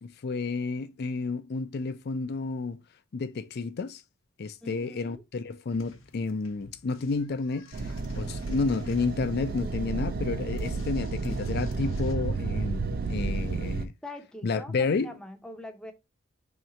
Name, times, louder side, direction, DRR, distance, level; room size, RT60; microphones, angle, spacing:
voice 1, 0.0-2.8 3.1-4.0 4.4-13.9 14.4-15.1, left 4 dB, 55° left, 0.4 m, -31 dB
voice 2, 4.6-5.2 14.0-15.9, left 1 dB, 5° left, 0.6 m, -43 dB
sound 1, 5.7-12.1, left 3 dB, 80° left, 0.7 m, -53 dB
sound 2, 7.7-13.9, right 3 dB, 50° right, 0.4 m, -31 dB
3.2 x 3.0 x 3.7 m
head